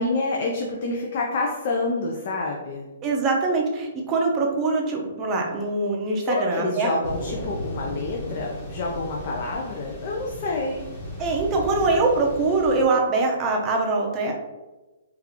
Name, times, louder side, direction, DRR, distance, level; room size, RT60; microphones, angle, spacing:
voice 1, 0.0-2.9 6.2-10.8, left 2 dB, 45° left, -1 dB, 0.5 m, -27 dB
voice 2, 3.0-6.9 11.2-14.3, right 3 dB, 20° right, 0 dB, 0.6 m, -23 dB
Thunder / Rain, 7.0-12.8, equal, 15° left, 0.9 m, -36 dB
3.7 x 2.4 x 2.9 m, 1.1 s
hypercardioid pair, 160°, 0 cm